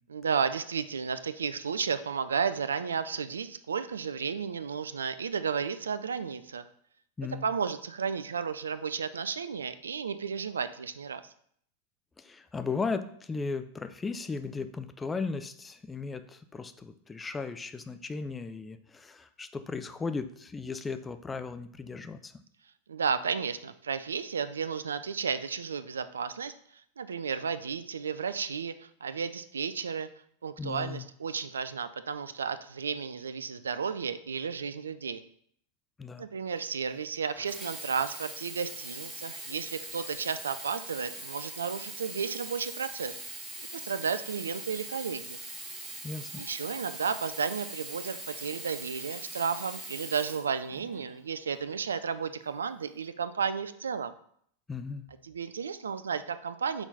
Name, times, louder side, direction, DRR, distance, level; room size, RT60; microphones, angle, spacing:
voice 1, 0.1-6.6 7.4-11.2 22.9-26.5 27.0-30.1 30.4-35.2 36.2-43.1 43.7-45.4 46.4-54.1 55.2-56.8, right 6 dB, 70° right, 13 dB, 0.3 m, -33 dB
voice 2, 12.2-22.3 30.6-31.1 36.0-36.3 46.0-46.4 54.7-55.1, left 4 dB, 15° left, 10 dB, 0.4 m, -36 dB
Sink (filling or washing), 37.4-51.1 51.9-52.0, right 2 dB, 15° right, 1.9 m, -42 dB
6.0 x 3.9 x 3.9 m, 0.65 s
figure-of-eight pair, 90°, 0 cm